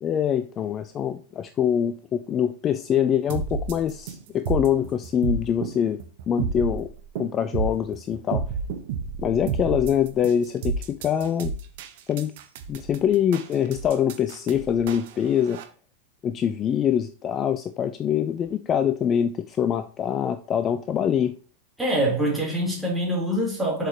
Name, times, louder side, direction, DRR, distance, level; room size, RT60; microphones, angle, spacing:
voice 1, 0.0-6.0 6.3-6.9 7.2-8.4 9.2-11.5 12.1-12.3 12.7-15.6 16.2-21.4, left 9 dB, 30° left, 0.4 m, -24 dB
sound 1, 3.3-15.6, right 5 dB, 50° right, 0.9 m, -31 dB
voice 2, 21.8-23.9, right 1 dB, 5° right, 3.3 m, -24 dB
7.4 x 5.0 x 2.9 m
figure-of-eight pair, 90°, 0 cm